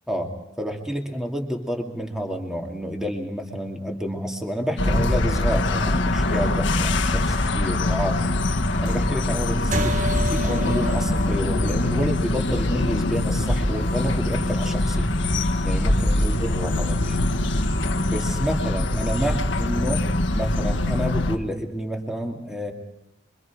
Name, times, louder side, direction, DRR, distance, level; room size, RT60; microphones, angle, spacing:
voice 1, 0.6-8.4 8.8-17.3 18.0-20.1 20.3-22.7, equal, 5° right, 1 dB, 2.6 m, -29 dB
sound 1, 4.8-21.4, left 1 dB, 75° left, 1.6 m, -23 dB
sound 2, 9.7-14.5, equal, 40° right, 1.1 m, -30 dB
26.5 x 24.5 x 4.8 m, 0.88 s
head